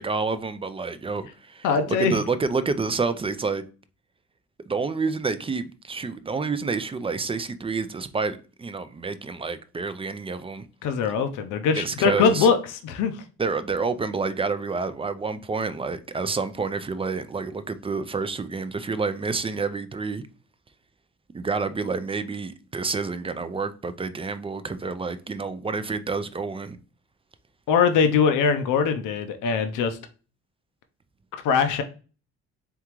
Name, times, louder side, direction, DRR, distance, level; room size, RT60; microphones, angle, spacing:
voice 1, 0.0-1.7 2.0-3.6 4.7-10.6 11.7-12.5 13.4-20.2 21.3-26.8, right 4 dB, 20° right, 0.4 m, -28 dB
voice 2, 1.6-2.2 10.8-13.2 27.7-30.0 31.4-31.8, left 6 dB, 90° left, 0.6 m, -22 dB
3.6 x 3.5 x 3.0 m
cardioid pair, 90°, 30 cm